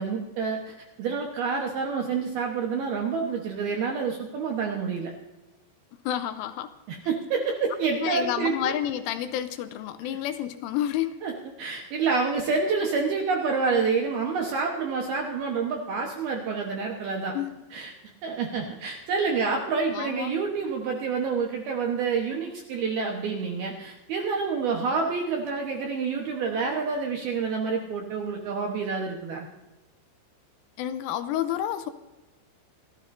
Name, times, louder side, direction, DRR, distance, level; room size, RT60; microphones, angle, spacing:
voice 1, 0.0-5.1 6.9-8.7 11.2-11.3 11.6-17.3 17.7-17.9 18.2-29.5, right 5 dB, 70° right, 1 dB, 2.4 m, -28 dB
voice 2, 6.0-6.7 8.0-11.2 17.3-17.6 19.9-20.4 30.8-31.9, left 11 dB, 80° left, 10 dB, 3.1 m, -30 dB
27.5 x 13.0 x 2.7 m, 1.1 s
omnidirectional pair, 5.9 m